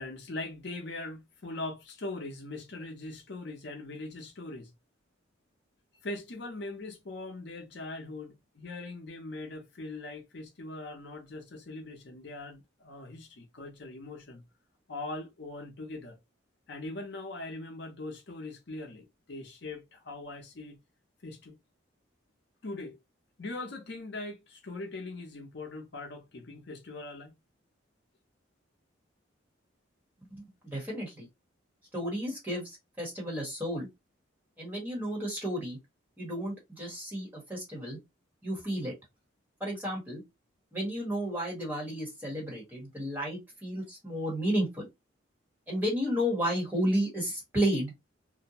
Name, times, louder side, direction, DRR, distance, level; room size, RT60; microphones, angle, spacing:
voice 1, 0.0-4.7 6.0-14.4 14.9-16.2 16.7-20.8 21.2-21.6 22.6-23.0 23.4-27.3, left 2 dB, 60° left, 0.6 m, -41 dB
voice 2, 30.6-31.3 31.9-32.6 33.0-33.9 34.6-35.8 36.2-38.0 38.4-38.9 39.6-40.2 40.7-44.7 45.7-47.9, equal, 10° right, 1.2 m, -32 dB
2.6 x 2.1 x 2.8 m
head